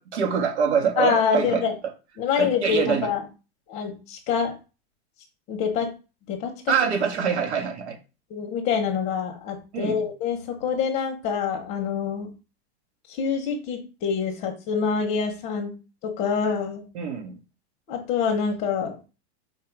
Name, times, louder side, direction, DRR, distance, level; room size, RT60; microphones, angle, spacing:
voice 1, 0.0-1.6 2.4-3.1 6.7-8.0 9.7-10.0 16.9-17.4, right 6 dB, 85° right, 3 dB, 1.4 m, -25 dB
voice 2, 1.0-1.7 2.2-3.2 3.7-4.5 5.5-5.9 6.3-6.5 8.3-12.3 13.1-15.8 16.0-16.8 17.9-19.0, left 6 dB, 20° left, 3 dB, 0.7 m, -26 dB
4.6 x 2.4 x 4.5 m, 0.31 s
supercardioid pair, 170°, 33 cm